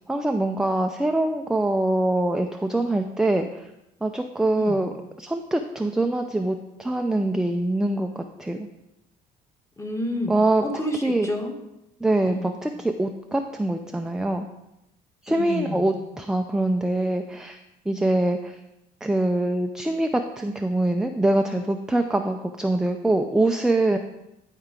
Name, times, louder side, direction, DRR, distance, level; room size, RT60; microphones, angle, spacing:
voice 1, 0.1-3.7 4.0-4.9 5.2-8.7 10.3-10.6 11.0-11.3 12.0-14.5 15.2-17.6 17.9-18.5 19.0-24.0, right 2 dB, 5° right, 4 dB, 0.4 m, -24 dB
voice 2, 9.8-10.3 10.6-11.6 12.2-12.5 15.3-15.8, left 1 dB, 15° left, 2 dB, 1.4 m, -30 dB
12.0 x 4.6 x 3.7 m, 0.89 s
cardioid pair, 110°, 17 cm